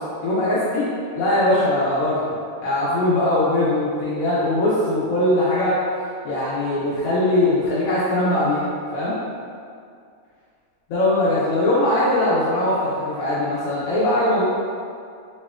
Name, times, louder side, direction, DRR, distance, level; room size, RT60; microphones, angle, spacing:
voice 1, 0.2-0.8 1.1-2.3 2.6-5.8 6.2-9.2 10.9-14.4, left 1 dB, 75° left, -9 dB, 1.1 m, -21 dB
4.1 x 2.9 x 2.3 m, 2.3 s
omnidirectional pair, 1.5 m